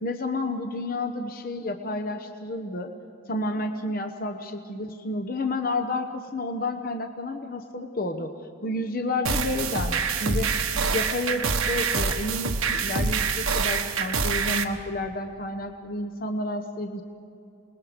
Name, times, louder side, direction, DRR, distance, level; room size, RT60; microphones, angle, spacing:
voice 1, 0.0-2.9 3.3-8.3 8.6-10.5 10.9-17.0, left 2 dB, 45° left, 5 dB, 1.0 m, -30 dB
sound 1, 9.2-14.6, right 5 dB, 85° right, 1.4 m, -26 dB
28.5 x 20.5 x 5.1 m, 2.7 s
head